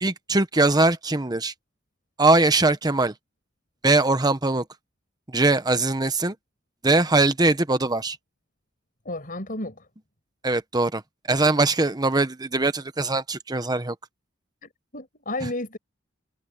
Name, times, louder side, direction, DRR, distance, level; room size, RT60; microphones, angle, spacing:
voice 1, 0.0-1.5 2.2-3.1 3.8-4.6 5.3-6.3 6.8-8.2 10.4-11.0 11.3-13.9, right 2 dB, 20° right, 1.1 m, -21 dB
voice 2, 9.0-9.9 14.6-15.8, left 2 dB, 45° left, 5.8 m, -32 dB
head